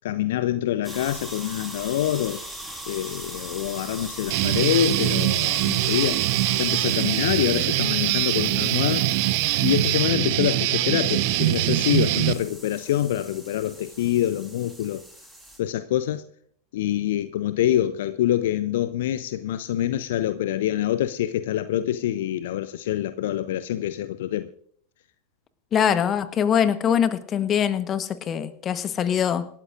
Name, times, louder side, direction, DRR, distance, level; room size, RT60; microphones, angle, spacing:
voice 1, 0.0-2.4 2.9-6.2 6.5-9.1 9.6-15.0 15.6-16.2 16.7-24.5, left 12 dB, 55° left, 0.6 m, -25 dB
sound 1, 0.8-15.6, right 1 dB, ahead, 3.7 m, -40 dB
Guitar, 4.3-12.3, right 16 dB, 45° right, 0.9 m, -23 dB
voice 2, 25.7-29.5, left 8 dB, 25° left, 1.1 m, -23 dB
26.0 x 13.0 x 2.5 m
figure-of-eight pair, 90°, 0 cm